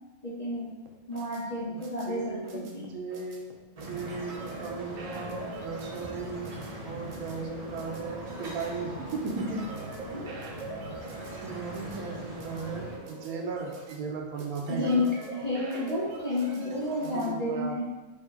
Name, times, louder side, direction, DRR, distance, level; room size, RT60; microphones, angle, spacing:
voice 1, 0.2-0.7 1.1-2.9 10.1-10.3 14.7-15.1 15.3-17.8, left 2 dB, 40° left, -7 dB, 0.6 m, -31 dB
sound 1, 0.9-17.3, right 3 dB, 65° right, 1.0 m, -44 dB
voice 2, 2.1-9.7 10.1-10.3 11.4-15.1 17.0-17.8, right 4 dB, 80° right, 1 dB, 1.2 m, -37 dB
sound 2, 3.8-13.0, right 1 dB, 40° right, 0.5 m, -41 dB
4.7 x 2.2 x 4.6 m, 1.2 s
omnidirectional pair, 1.5 m